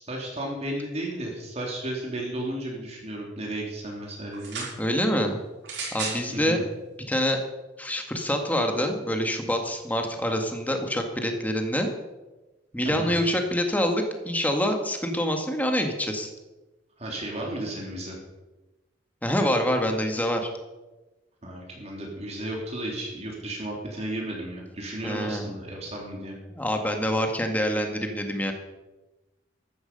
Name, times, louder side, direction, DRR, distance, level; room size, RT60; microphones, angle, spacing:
voice 1, 0.0-4.6 6.3-6.6 12.8-13.2 17.0-18.2 21.4-26.4, right 1 dB, 35° right, -2 dB, 3.1 m, -34 dB
sound 1, 4.3-4.8 5.6-6.2 7.1-7.2, right 4 dB, 75° right, 6.2 m, -33 dB
voice 2, 4.8-5.4 5.9-6.6 7.1-7.4 7.8-11.9 12.7-16.3 19.2-20.5 25.0-25.5 26.5-28.5, equal, 10° left, 4 dB, 1.8 m, -26 dB
14.5 x 12.5 x 5.4 m, 1.1 s
head